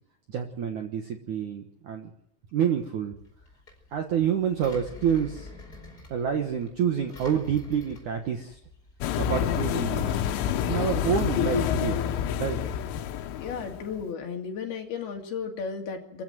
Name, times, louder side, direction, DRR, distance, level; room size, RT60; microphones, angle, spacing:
voice 1, 0.3-2.1 2.5-3.2 3.9-5.5 6.1-8.6 9.2-10.2 10.7-12.6, right 8 dB, 65° right, 4 dB, 2.0 m, -28 dB
Engine, 3.2-9.3, left 2 dB, 20° left, 5.1 m, -48 dB
sound 1, 9.0-14.0, left 10 dB, 90° left, 3.7 m, -28 dB
voice 2, 13.3-16.2, left 6 dB, 60° left, 3 dB, 3.9 m, -34 dB
25.0 x 15.5 x 9.2 m, 0.77 s
omnidirectional pair, 5.4 m